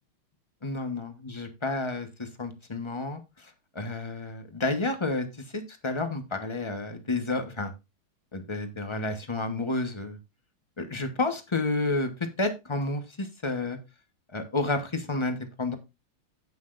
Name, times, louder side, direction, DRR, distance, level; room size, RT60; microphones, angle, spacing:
voice 1, 0.6-5.3 5.5-7.7 8.3-10.2 10.8-12.1 12.4-13.8 14.3-15.7, left 2 dB, 30° left, 7 dB, 0.5 m, -30 dB
16.5 x 5.8 x 2.5 m, 0.24 s
omnidirectional pair, 2.3 m